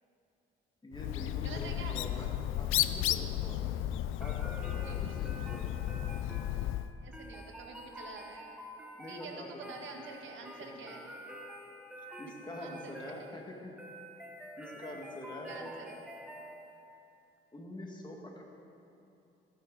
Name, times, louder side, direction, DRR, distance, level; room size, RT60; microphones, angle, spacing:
voice 1, 0.8-2.3 2.6-3.7 4.2-5.8 9.0-9.9 10.6-10.8 12.2-13.7 14.6-15.9 17.5-18.4, left 1 dB, 20° left, -1 dB, 2.0 m, -45 dB
Bird, 0.9-6.9, left 13 dB, 90° left, 0.4 m, -33 dB
voice 2, 1.4-2.1 4.8-5.2 7.0-8.5 9.1-11.0 12.6-12.9 15.5-16.0, right 4 dB, 70° right, 2 dB, 1.5 m, -47 dB
sound 1, 4.2-17.0, equal, 5° right, 1.3 m, -49 dB
16.0 x 9.5 x 4.0 m, 2.8 s
cardioid pair, 90°, 20 cm